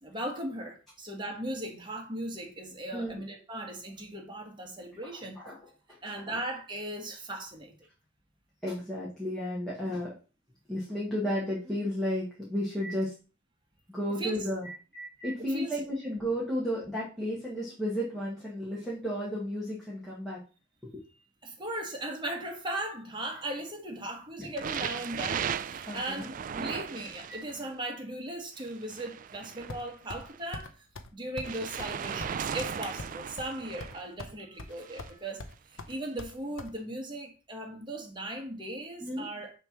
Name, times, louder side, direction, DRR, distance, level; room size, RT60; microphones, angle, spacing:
voice 1, 0.0-5.4 6.0-7.7 14.2-14.4 15.4-15.7 21.4-30.9 31.1-39.5, right 1 dB, 25° right, 1.4 m, -38 dB
voice 2, 8.6-10.1 10.7-13.1 13.9-20.4 20.8-21.0 24.4-24.5 25.9-26.3 27.3-27.4 39.0-39.2, equal, ahead, 1.5 m, -33 dB
sound 1, 24.6-27.7 28.6-30.4 31.4-34.0 34.7-35.1 35.9-36.0, right 7 dB, 40° right, 0.3 m, -37 dB
sound 2, 29.7-30.2 30.5-30.7 30.9-31.1 31.4-31.5 31.8-31.9 32.2-33.5 33.8-34.3 34.6-35.1 35.4-36.7, left 2 dB, 85° left, 0.8 m, -42 dB
6.5 x 3.2 x 5.8 m
head